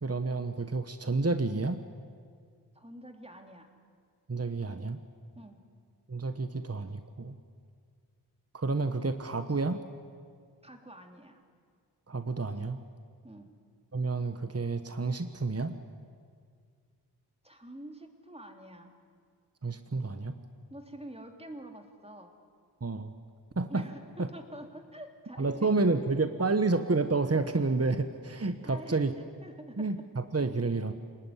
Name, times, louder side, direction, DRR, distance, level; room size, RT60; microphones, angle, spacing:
voice 1, 0.0-1.8 4.3-5.0 6.1-7.4 8.5-9.8 12.1-12.8 13.9-15.8 19.6-20.3 22.8-23.1 23.6-23.8 24.2-24.3 25.4-29.1 29.8-30.9, right 3 dB, 35° right, 9 dB, 1.3 m, -30 dB
voice 2, 2.7-3.7 5.3-5.6 10.6-11.4 13.2-13.5 17.4-19.0 20.7-22.4 23.7-25.8 28.6-29.9, right 1 dB, 15° right, 4 dB, 3.4 m, -47 dB
29.0 x 19.5 x 9.9 m, 2.1 s
wide cardioid pair, 45°, 41 cm